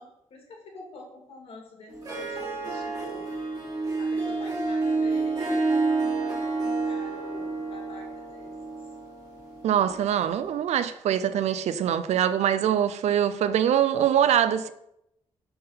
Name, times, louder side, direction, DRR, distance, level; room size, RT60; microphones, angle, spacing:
voice 1, 0.0-3.3 4.0-8.9, left 3 dB, 60° left, 2.1 m, -47 dB
Harp, 1.9-10.5, right 3 dB, 30° right, 1.6 m, -29 dB
voice 2, 9.6-14.7, right 9 dB, 80° right, 0.4 m, -23 dB
5.6 x 5.5 x 5.6 m
wide cardioid pair, 175°, 11 cm